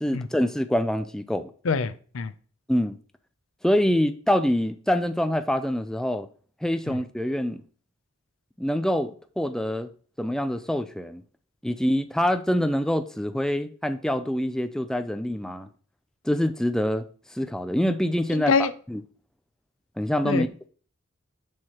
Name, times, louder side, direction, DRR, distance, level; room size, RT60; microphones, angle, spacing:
voice 1, 0.0-1.5 2.7-3.0 3.6-6.3 6.6-7.6 8.6-9.9 10.2-11.2 11.6-15.7 16.2-17.1 17.3-18.5 18.9-19.0 20.0-20.5, equal, 5° left, 0.3 m, -25 dB
voice 2, 1.6-2.3 18.3-18.7 20.2-20.7, left 5 dB, 80° left, 0.5 m, -25 dB
7.4 x 4.7 x 3.0 m
head